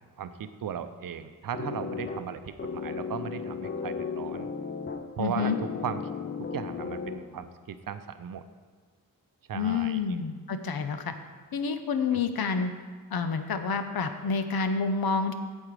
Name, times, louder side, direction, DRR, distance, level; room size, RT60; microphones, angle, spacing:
voice 1, 0.2-4.5 5.2-6.0 6.4-8.4 9.5-10.2 12.1-12.2, right 8 dB, 65° right, 10 dB, 0.6 m, -37 dB
sound 1, 1.5-7.5, left 5 dB, 30° left, 0.5 m, -35 dB
voice 2, 5.2-5.6 9.5-11.1 11.5-12.7 13.1-15.3, left 5 dB, 80° left, 9 dB, 0.7 m, -28 dB
8.7 x 7.4 x 4.8 m, 1.5 s
wide cardioid pair, 155°, 36 cm